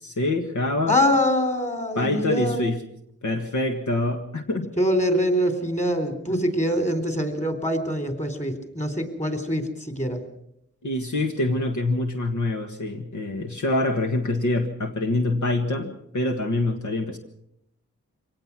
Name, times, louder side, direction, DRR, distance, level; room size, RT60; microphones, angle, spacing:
voice 1, 0.0-0.9 2.0-2.8 3.2-4.7 6.3-6.4 10.8-17.2, left 2 dB, 70° left, 4 dB, 1.7 m, -25 dB
voice 2, 0.9-2.7 4.8-10.2, equal, 25° left, 8 dB, 3.7 m, -24 dB
24.5 x 18.5 x 6.1 m, 0.76 s
wide cardioid pair, 85°, 31 cm